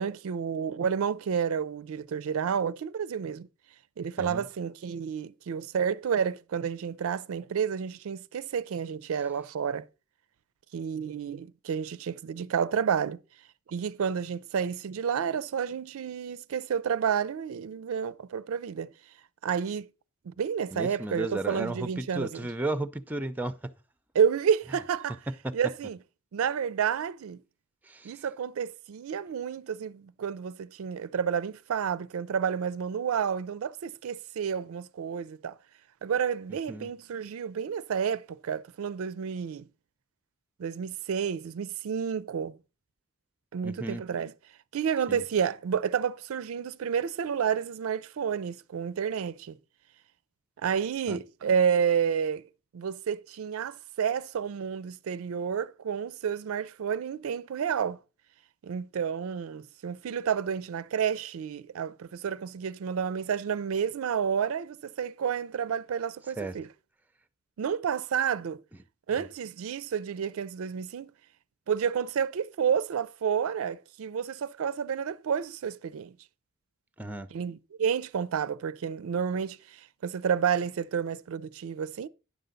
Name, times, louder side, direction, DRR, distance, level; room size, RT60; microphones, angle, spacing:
voice 1, 0.0-3.5 4.0-9.9 10.7-13.2 13.7-18.9 19.4-19.9 20.3-22.5 24.1-25.2 25.5-26.0 26.3-27.4 28.0-35.6 36.0-39.7 40.6-42.6 43.5-44.3 44.7-49.6 50.6-52.4 52.7-58.0 58.6-66.7 67.6-68.6 69.1-71.1 71.7-76.1 77.3-82.1, right 7 dB, 65° right, 0.4 m, -30 dB
voice 2, 20.7-23.6 25.4-25.5 27.9-28.1 36.7-36.9 43.6-44.0 45.1-45.2 51.1-51.2 66.4-66.5 69.2-69.3 77.0-77.3, right 2 dB, 10° right, 0.4 m, -34 dB
9.8 x 6.7 x 3.8 m
head